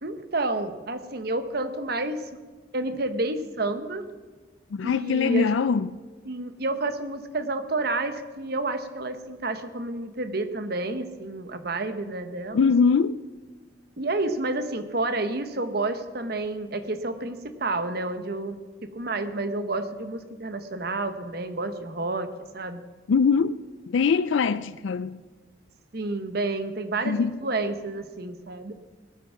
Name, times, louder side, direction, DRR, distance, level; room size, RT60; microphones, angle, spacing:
voice 1, 0.0-2.2 2.7-4.1 4.8-5.6 6.2-12.7 14.0-22.8 25.9-28.8, right 2 dB, 55° right, 1.1 m, -30 dB
voice 2, 4.7-6.0 12.5-13.2 23.1-23.6 23.9-25.2 27.0-27.4, left 5 dB, 75° left, 0.4 m, -22 dB
18.5 x 8.7 x 5.9 m
head